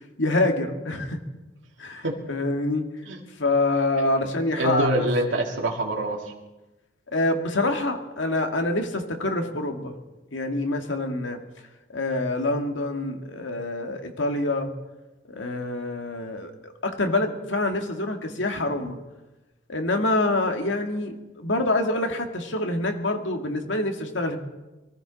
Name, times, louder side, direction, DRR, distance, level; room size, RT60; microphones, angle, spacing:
voice 1, 0.2-1.2 1.8-2.9 3.4-5.1 7.1-9.9 10.3-11.4 11.9-14.7 15.3-19.0 19.7-24.4, left 2 dB, 75° left, 5 dB, 1.9 m, -26 dB
voice 2, 4.6-6.3, right 1 dB, 85° right, 0 dB, 2.0 m, -25 dB
23.5 x 14.5 x 4.0 m, 1.1 s
head